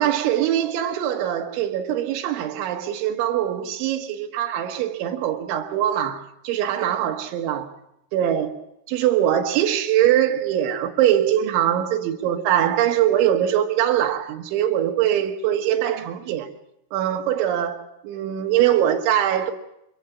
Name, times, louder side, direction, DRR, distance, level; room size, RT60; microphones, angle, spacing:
voice 1, 0.0-7.7 8.1-8.6 8.9-16.5 16.9-19.5, right 11 dB, 75° right, 3.7 m, -22 dB
25.5 x 22.5 x 5.9 m
omnidirectional pair, 5.6 m